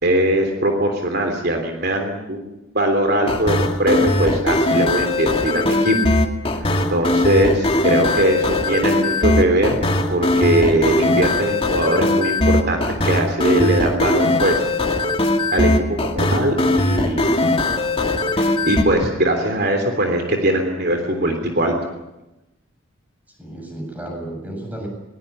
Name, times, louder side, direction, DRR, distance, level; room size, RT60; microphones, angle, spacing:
voice 1, 0.0-6.0 6.5-6.6 6.9-9.8 10.1-14.7 15.5-17.4 18.3-21.7, right 1 dB, 50° right, 4 dB, 3.3 m, -20 dB
sound 1, 3.3-18.8, left 2 dB, 25° left, 2.1 m, -19 dB
voice 2, 23.4-24.9, right 1 dB, 10° right, 1 dB, 7.6 m, -33 dB
21.0 x 20.5 x 10.0 m, 0.96 s
head